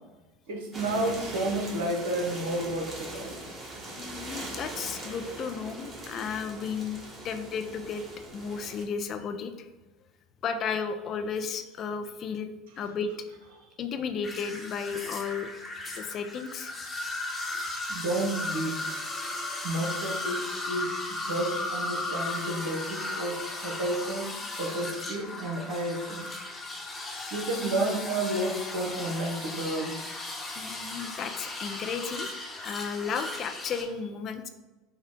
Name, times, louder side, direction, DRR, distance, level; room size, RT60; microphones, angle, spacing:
voice 1, 0.5-3.3 17.9-18.8 19.6-26.3 27.3-30.1 31.7-31.8, right 1 dB, 70° right, 1 dB, 0.9 m, -31 dB
sound 1, 0.7-8.8, right 1 dB, 25° right, 1.4 m, -41 dB
voice 2, 4.0-8.0 8.3-9.5 10.4-12.5 12.8-13.1 13.8-15.5 15.9-17.0 30.6-32.3 32.6-34.5, left 6 dB, 45° left, 8 dB, 0.4 m, -34 dB
sound 2, 14.2-33.8, left 2 dB, 20° left, 1.0 m, -36 dB
5.7 x 2.2 x 3.7 m, 1.1 s
figure-of-eight pair, 70°, 0 cm